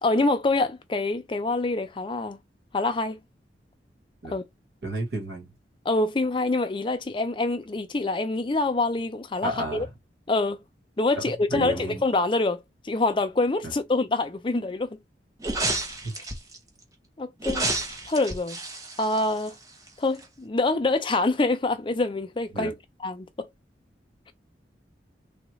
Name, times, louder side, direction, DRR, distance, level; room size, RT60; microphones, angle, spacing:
voice 1, 0.0-2.4 2.7-3.2 4.3-4.4 5.8-9.9 10.3-10.6 11.0-15.0 17.2-17.7 18.1-18.6 19.0-19.6 20.0-22.7 23.0-23.5, left 2 dB, 30° left, 0.5 m, -26 dB
voice 2, 4.8-5.5 9.4-9.9 11.2-12.0 13.6-13.7 16.0-16.1 22.5-22.7, right 1 dB, 70° right, 1.4 m, -32 dB
sound 1, 15.4-16.6 17.4-19.9 20.2-20.3, right 2 dB, 20° right, 0.7 m, -30 dB
3.4 x 2.4 x 3.1 m
head